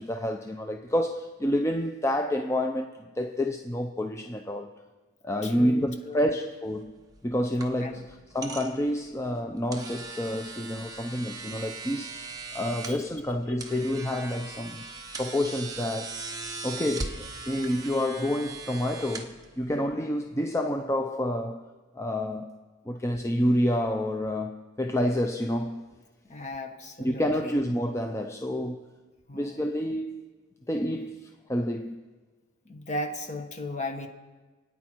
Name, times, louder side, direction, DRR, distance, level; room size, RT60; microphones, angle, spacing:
voice 1, 0.0-4.8 5.2-6.9 7.2-12.1 12.5-16.2 16.6-21.7 21.9-22.6 22.9-25.8 27.0-28.9 29.3-30.2 30.7-32.0, left 1 dB, 15° left, 0.5 m, -29 dB
voice 2, 5.4-6.3 7.8-8.0 12.8-13.0 26.3-27.6 29.3-29.6 32.6-34.1, left 1 dB, 35° left, 1.4 m, -36 dB
sound 1, 6.7-19.9, right 3 dB, 20° right, 1.3 m, -40 dB
28.5 x 9.5 x 4.5 m
head